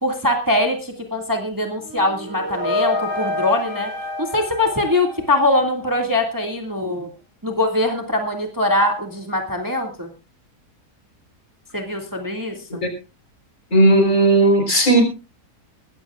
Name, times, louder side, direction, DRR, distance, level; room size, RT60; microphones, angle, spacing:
voice 1, 0.0-3.9 4.2-7.1 7.4-10.1 11.7-12.8, left 1 dB, 10° right, 3 dB, 2.0 m, -22 dB
sound 1, 1.8-5.8, left 1 dB, 50° right, 5.7 m, -28 dB
voice 2, 13.7-15.0, right 2 dB, 50° left, 5 dB, 4.3 m, -15 dB
21.0 x 15.0 x 2.4 m, 0.31 s
omnidirectional pair, 1.7 m